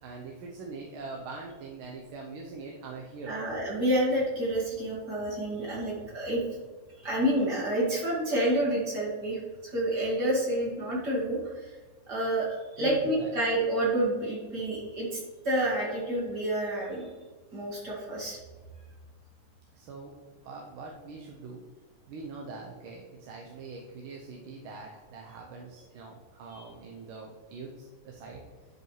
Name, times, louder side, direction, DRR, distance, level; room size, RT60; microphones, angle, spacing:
voice 1, 0.0-3.4 12.8-13.3 19.7-20.2 20.4-21.6 22.1-28.4, right 3 dB, 80° right, 0 dB, 1.6 m, -42 dB
voice 2, 3.3-6.4 7.0-11.8 12.1-17.1 17.5-18.4 26.5-26.7, right 1 dB, 50° right, -5 dB, 2.6 m, -29 dB
11.0 x 5.3 x 3.2 m, 1.4 s
omnidirectional pair, 2.3 m